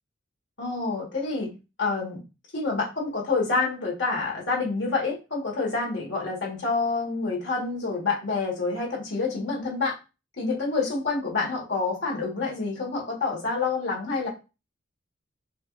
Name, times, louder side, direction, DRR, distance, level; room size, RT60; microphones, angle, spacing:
voice 1, 0.6-1.5 1.8-2.2 2.5-9.9 10.4-14.3, left 3 dB, 60° left, -2 dB, 1.7 m, -27 dB
6.2 x 2.6 x 2.5 m, 0.29 s
head